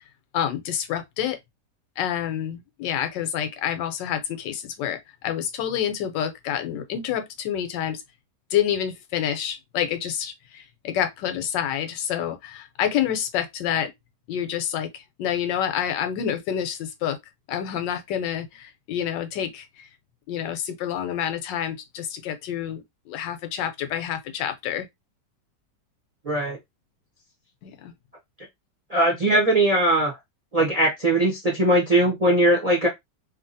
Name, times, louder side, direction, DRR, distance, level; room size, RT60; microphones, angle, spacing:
voice 1, 0.3-1.4 2.0-8.0 8.5-13.9 14.3-17.2 17.5-19.9 20.3-24.9 27.6-27.9, left 9 dB, 85° left, 1.3 m, -28 dB
voice 2, 26.2-26.6 28.9-30.1 30.5-32.9, right 1 dB, 35° right, 0.6 m, -20 dB
2.8 x 2.8 x 2.6 m
omnidirectional pair, 1.9 m